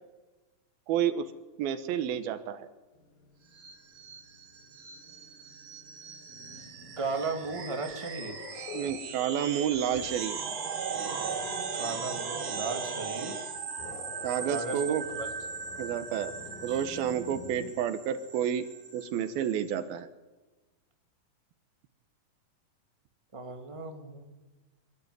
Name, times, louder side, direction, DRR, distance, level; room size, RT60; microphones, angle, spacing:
voice 1, 0.9-1.3 1.6-2.7 8.7-10.4 14.2-15.1 15.8-16.3 16.6-18.7 18.9-20.1, right 9 dB, 80° right, 11 dB, 3.0 m, -30 dB
Growling, 2.9-9.1 9.5-11.9 13.3-17.7, left 4 dB, 75° left, 4.2 m, -49 dB
sound 1, 3.5-19.8, right 6 dB, 50° right, 2.9 m, -38 dB
voice 2, 7.0-8.5 11.7-13.4 14.5-15.3 16.7-16.8 23.3-24.3, right 3 dB, 10° right, 3 dB, 2.1 m, -36 dB
24.5 x 14.0 x 9.6 m, 1.2 s
omnidirectional pair, 4.3 m